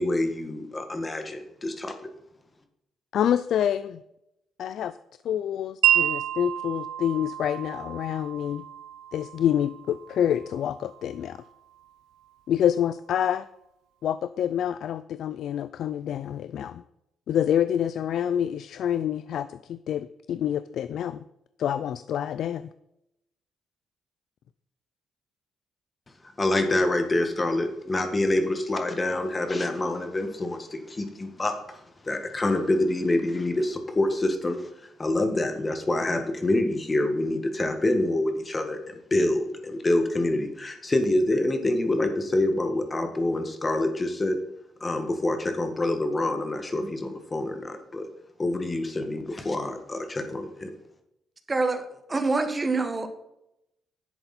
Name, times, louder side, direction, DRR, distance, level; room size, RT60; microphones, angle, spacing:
voice 1, 0.0-1.9 26.4-34.7 35.0-44.4 44.8-48.1 48.4-50.7, left 1 dB, 25° left, 6 dB, 1.7 m, -26 dB
voice 2, 3.1-4.0 4.6-4.9 5.2-8.6 9.1-11.4 12.5-13.5 14.0-16.8 17.3-21.2 21.6-22.7, left 10 dB, 70° left, 14 dB, 0.4 m, -27 dB
Wind chime, 5.8-11.9, right 12 dB, 85° right, 0.3 m, -30 dB
voice 3, 51.5-51.8 52.1-53.1, right 3 dB, 25° right, 7 dB, 1.5 m, -25 dB
10.5 x 7.9 x 4.3 m, 0.83 s
cardioid pair, 90°, 0 cm